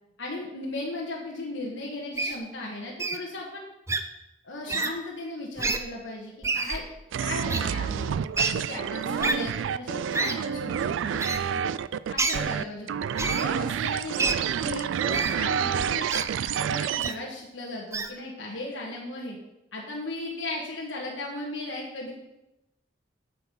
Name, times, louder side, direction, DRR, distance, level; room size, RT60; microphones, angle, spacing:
voice 1, 0.2-3.6 4.4-6.9 7.2-8.2 8.5-11.6 12.1-12.9 13.1-19.4 19.7-22.1, left 2 dB, 75° left, -3 dB, 1.3 m, -36 dB
Wild animals, 2.2-2.4 3.0-3.2 3.9-4.0 4.7-4.9 5.6-5.8 6.4-6.8 7.5-7.6 8.3-8.5 9.2-9.3 10.1-10.3 11.2-11.4 12.2-12.4 13.2-13.4 14.2-14.3 15.1-15.3 16.1-16.2 17.0-17.1 17.9-18.1, right 3 dB, 15° right, 0.5 m, -27 dB
sound 1, 7.1-17.1, right 8 dB, 85° right, 0.3 m, -29 dB
7.7 x 7.0 x 5.4 m, 0.95 s
head